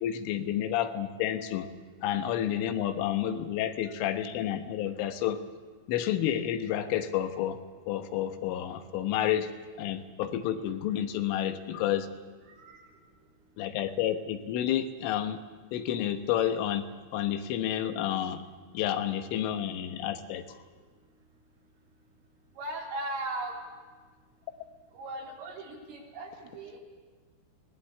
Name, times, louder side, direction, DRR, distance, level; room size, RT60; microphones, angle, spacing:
voice 1, 0.0-1.7 2.0-5.4 5.9-7.6 7.9-9.5 9.8-12.1 13.6-15.4 15.7-16.9 17.1-18.4 18.7-20.6, left 11 dB, 90° left, 9 dB, 3.8 m, -30 dB
voice 2, 12.4-12.8 22.6-23.6 24.9-26.8, right 2 dB, 85° right, -1 dB, 6.3 m, -38 dB
25.0 x 19.0 x 8.6 m, 1.4 s
omnidirectional pair, 5.6 m